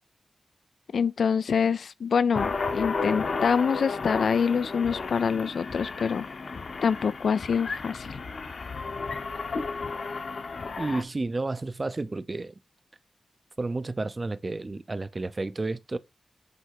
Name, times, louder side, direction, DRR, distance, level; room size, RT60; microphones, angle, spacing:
voice 1, 0.9-6.2 6.8-8.1, left 6 dB, 80° left, 0.3 m, -25 dB
sound 1, 2.3-11.0, left 4 dB, 55° left, 0.9 m, -33 dB
voice 2, 10.8-12.5 13.6-16.0, right 3 dB, 25° right, 0.5 m, -31 dB
8.0 x 3.4 x 4.6 m
wide cardioid pair, 160°, 0 cm